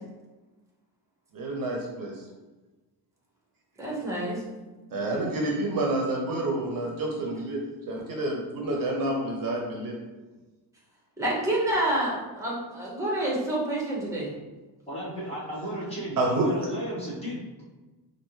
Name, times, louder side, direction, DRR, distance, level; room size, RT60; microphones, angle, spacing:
voice 1, 1.3-2.1 4.9-10.0 16.2-16.5, right 2 dB, 55° right, -1 dB, 0.7 m, -29 dB
voice 2, 3.8-4.4 11.2-14.3, right 1 dB, 5° right, -5 dB, 1.0 m, -28 dB
voice 3, 4.9-5.2 14.9-17.4, equal, 15° left, -9 dB, 1.3 m, -35 dB
4.2 x 2.6 x 3.1 m, 1.2 s
cardioid pair, 165°, 41 cm